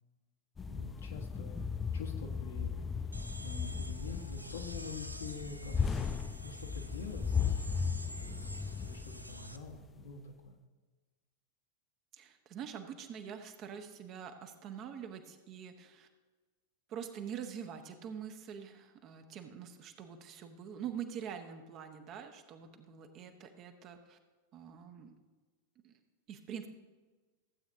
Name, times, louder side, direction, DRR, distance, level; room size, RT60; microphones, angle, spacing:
sound 1, 0.6-9.8, left 6 dB, 15° left, 0.3 m, -36 dB
voice 1, 0.7-1.7 1.9-2.7 3.4-10.5, left 3 dB, 65° left, 1 dB, 1.3 m, -46 dB
sound 2, 3.1-9.6, right 1 dB, 85° right, 0.5 m, -49 dB
voice 2, 12.1-16.1 16.9-24.2 24.5-25.1 25.8-25.9 26.3-26.7, right 8 dB, 35° right, 6 dB, 0.9 m, -45 dB
15.5 x 8.3 x 2.6 m, 1.3 s
figure-of-eight pair, 90°, 0 cm